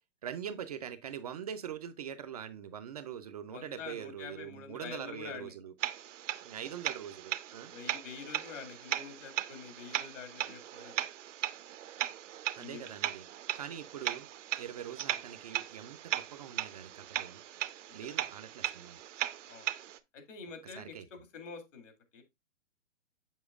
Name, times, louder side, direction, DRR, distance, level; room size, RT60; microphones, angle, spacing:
voice 1, 0.2-5.7 6.4-7.7 12.6-13.2 13.6-14.3 14.6-17.4 17.9-19.0 20.8-21.0, right 9 dB, 35° right, 0.4 m, -43 dB
voice 2, 3.5-5.5 7.7-11.1 12.6-12.9 17.9-18.2 19.5-19.7 20.1-22.2, left 6 dB, 70° left, 2.3 m, -47 dB
sound 1, 5.8-20.0, right 12 dB, 70° right, 0.7 m, -38 dB
7.2 x 5.9 x 2.3 m
hypercardioid pair, 140°, 38 cm